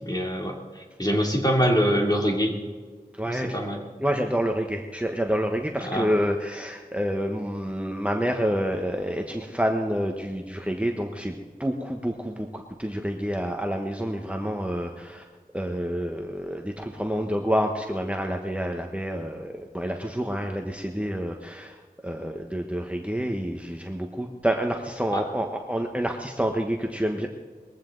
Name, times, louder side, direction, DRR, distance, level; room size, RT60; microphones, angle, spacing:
voice 1, 0.0-2.5 3.3-3.8 5.8-6.1 25.1-25.2, equal, 25° left, 0 dB, 3.0 m, -24 dB
voice 2, 3.1-3.6 4.0-15.2 15.5-21.8 22.0-27.3, equal, 10° right, 2 dB, 1.2 m, -28 dB
21.0 x 15.0 x 4.0 m, 1.5 s
wide cardioid pair, 50°, 15 cm